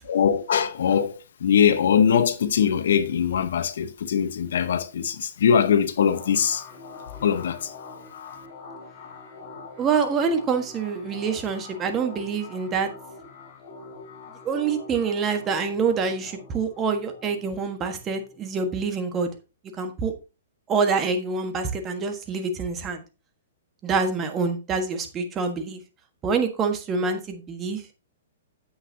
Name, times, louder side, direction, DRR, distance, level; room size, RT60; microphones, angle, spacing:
voice 1, 0.0-6.6 7.2-7.7, left 8 dB, 70° left, 1.0 m, -22 dB
sound 1, 6.0-19.2, left 3 dB, 40° left, 4.4 m, -44 dB
voice 2, 9.8-12.9 14.4-19.3 19.7-20.1 20.7-23.0 23.8-25.8 26.2-27.8, right 5 dB, 20° right, 1.5 m, -26 dB
9.9 x 8.0 x 2.8 m
hypercardioid pair, 150°, 0 cm